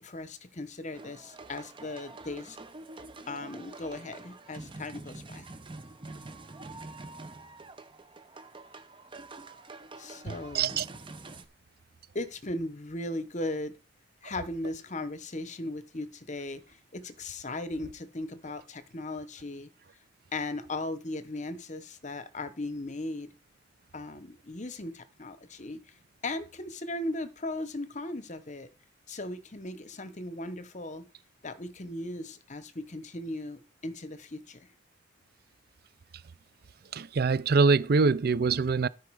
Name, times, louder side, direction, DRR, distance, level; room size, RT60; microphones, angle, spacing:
voice 1, 0.0-2.6 3.3-5.5 10.0-10.8 12.1-13.8 14.2-19.7 20.3-23.3 23.9-25.8 26.2-28.7 29.1-31.1 31.4-34.7, left 2 dB, 40° left, 1.1 m, -37 dB
sound 1, 0.9-11.4, right 2 dB, 25° right, 0.9 m, -46 dB
voice 2, 10.5-10.9 36.9-38.9, right 4 dB, 55° right, 0.5 m, -24 dB
13.0 x 5.0 x 4.8 m
head